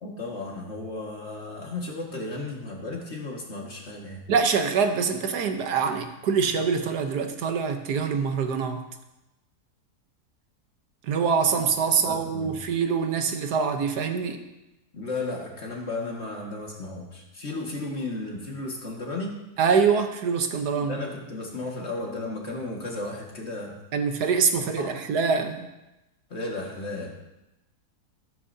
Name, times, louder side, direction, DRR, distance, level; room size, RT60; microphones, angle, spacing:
voice 1, 0.0-4.3 11.9-12.5 14.9-19.4 20.8-23.8 24.7-25.0 26.3-27.1, left 2 dB, 45° left, -1 dB, 2.1 m, -34 dB
voice 2, 4.3-8.8 11.0-14.4 19.6-21.0 23.9-25.7, right 6 dB, 80° right, 6 dB, 1.5 m, -24 dB
13.5 x 12.5 x 2.7 m, 0.95 s
omnidirectional pair, 1.7 m